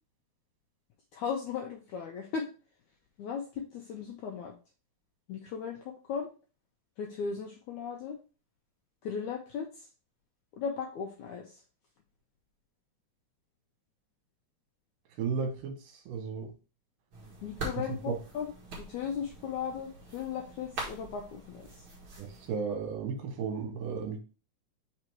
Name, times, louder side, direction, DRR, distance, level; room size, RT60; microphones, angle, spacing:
voice 1, 1.1-2.5 3.2-4.5 5.3-6.3 7.0-8.2 9.0-9.9 10.5-11.6 17.4-21.9, left 6 dB, 75° left, 1.8 m, -37 dB
voice 2, 15.2-15.7 16.1-16.5 18.1-18.2 22.2-24.2, right 5 dB, 70° right, 2.8 m, -34 dB
sound 1, 17.1-22.5, right 2 dB, 45° right, 2.0 m, -43 dB
5.8 x 4.0 x 4.5 m
omnidirectional pair, 4.4 m